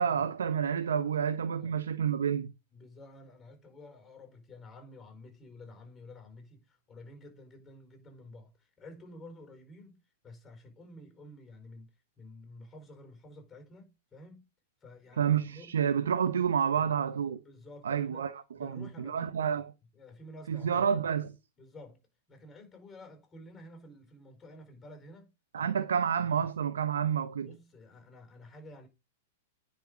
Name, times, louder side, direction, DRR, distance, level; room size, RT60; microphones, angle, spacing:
voice 1, 0.0-2.5 15.2-17.4 17.8-19.7 20.5-21.3 25.5-27.5, right 7 dB, 90° right, 0.9 m, -29 dB
voice 2, 2.7-14.5 14.8-15.8 16.7-19.7 19.9-20.9 21.6-26.5 27.4-28.9, left 1 dB, 15° left, 4.8 m, -51 dB
9.9 x 5.5 x 5.1 m
hypercardioid pair, 130°, 0 cm